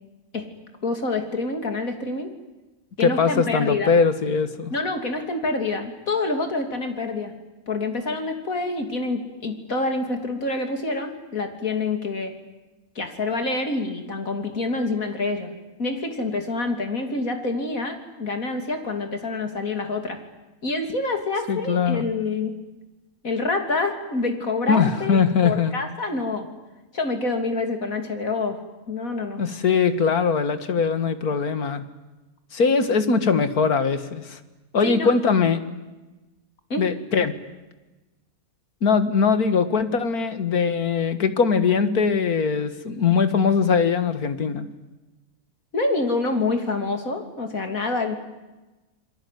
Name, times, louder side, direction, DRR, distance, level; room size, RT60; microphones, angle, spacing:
voice 1, 0.8-2.3 3.0-3.9 4.7-7.3 7.7-12.3 13.0-15.5 15.8-20.2 20.6-22.5 23.2-26.5 26.9-28.6 28.9-29.4 34.8-35.1 36.7-36.8 45.7-48.1, left 3 dB, 65° left, 6 dB, 3.5 m, -27 dB
voice 2, 3.0-4.7 21.5-22.1 24.7-25.7 29.4-31.8 32.5-34.4 34.7-35.6 36.8-37.3 38.8-44.7, left 5 dB, 85° left, 10 dB, 2.2 m, -21 dB
28.0 x 22.0 x 9.3 m, 1.1 s
omnidirectional pair, 1.5 m